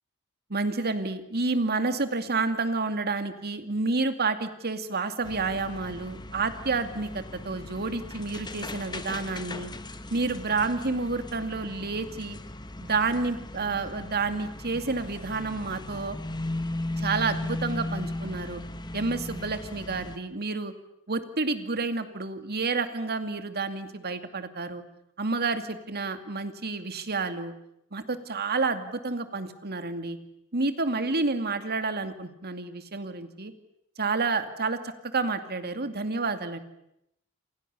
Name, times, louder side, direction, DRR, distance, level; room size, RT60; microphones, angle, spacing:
voice 1, 0.5-9.7 10.1-12.4 12.8-16.2 17.0-18.6 18.9-20.7 21.1-24.8 25.2-27.5 27.9-30.2 30.5-33.5 34.0-36.6, right 3 dB, 45° right, 9 dB, 2.5 m, -29 dB
sound 1, 5.2-20.2, left 1 dB, 20° left, 1.4 m, -37 dB
28.5 x 27.5 x 7.0 m, 0.79 s
head